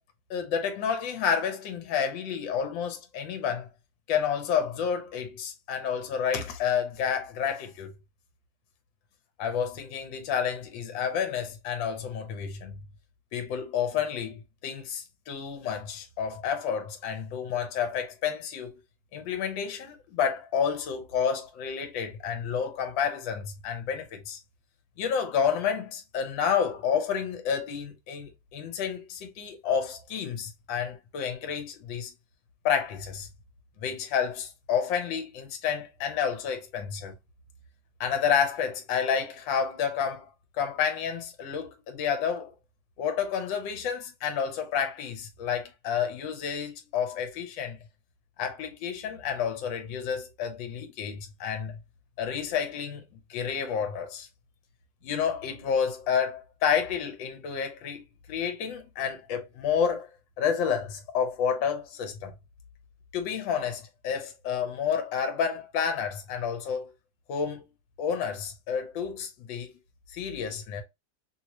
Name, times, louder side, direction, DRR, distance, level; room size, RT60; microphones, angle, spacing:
voice 1, 0.3-3.7 4.1-7.9 9.4-12.8 13.3-18.8 19.1-24.4 25.0-32.1 32.6-33.3 33.8-37.1 38.0-40.3 40.6-42.5 43.0-47.8 48.4-51.8 52.2-53.0 53.3-54.3 55.0-58.0 58.3-60.1 60.4-62.3 63.1-66.9 67.3-67.7 68.0-69.7 70.1-70.8, left 7 dB, 80° left, 1.4 m, -30 dB
3.0 x 2.8 x 2.9 m
omnidirectional pair, 2.0 m